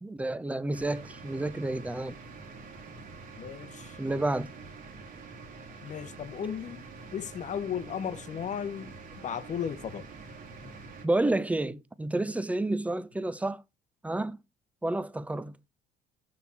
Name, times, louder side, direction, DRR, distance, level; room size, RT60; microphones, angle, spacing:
voice 1, 0.0-2.2 4.0-4.5 11.0-13.6 14.0-14.4 14.8-15.5, right 2 dB, 10° right, 0.5 m, -30 dB
sound 1, 0.7-11.1, right 4 dB, 55° right, 1.9 m, -46 dB
voice 2, 3.4-4.0 5.8-6.8 7.1-10.0 10.6-10.7, left 8 dB, 45° left, 0.8 m, -35 dB
6.5 x 4.3 x 5.5 m
cardioid pair, 110°, 17 cm